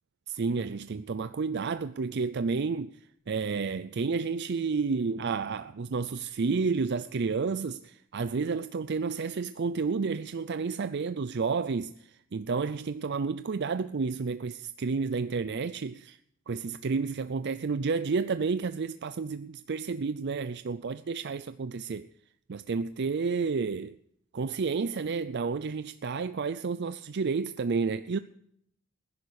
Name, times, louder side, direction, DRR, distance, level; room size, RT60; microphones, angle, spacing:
voice 1, 0.3-2.9 3.3-11.9 12.3-16.2 16.5-22.1 22.5-23.9 24.3-28.2, right 4 dB, 55° right, 0.5 m, -30 dB
20.0 x 11.0 x 4.8 m
head